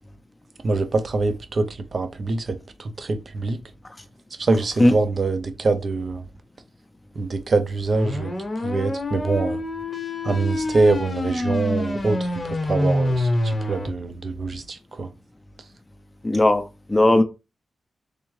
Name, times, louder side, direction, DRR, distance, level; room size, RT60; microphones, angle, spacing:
voice 1, 0.6-3.6 4.4-6.2 7.1-9.6 10.2-15.1, right 3 dB, 45° right, 0.5 m, -24 dB
sound 1, 7.9-13.9, left 1 dB, 30° left, 0.8 m, -26 dB
voice 2, 16.2-17.2, left 1 dB, 15° left, 0.4 m, -17 dB
3.5 x 3.3 x 3.1 m
wide cardioid pair, 130°, 0 cm